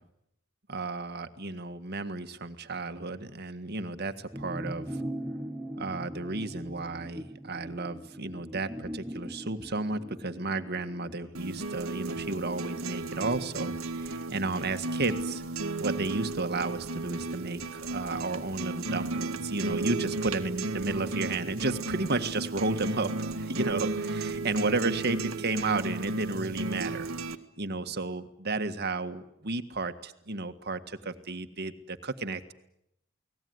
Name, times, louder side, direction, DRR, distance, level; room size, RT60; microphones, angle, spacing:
voice 1, 0.7-5.0 5.8-15.4 15.8-27.1 27.6-32.5, right 3 dB, 50° right, 9 dB, 1.7 m, -33 dB
sound 1, 4.3-14.2 14.5-14.6, right 1 dB, 10° right, 1.2 m, -41 dB
sound 2, 11.3-27.4, right 3 dB, 85° right, 1.7 m, -34 dB
29.5 x 19.5 x 9.6 m, 0.81 s
head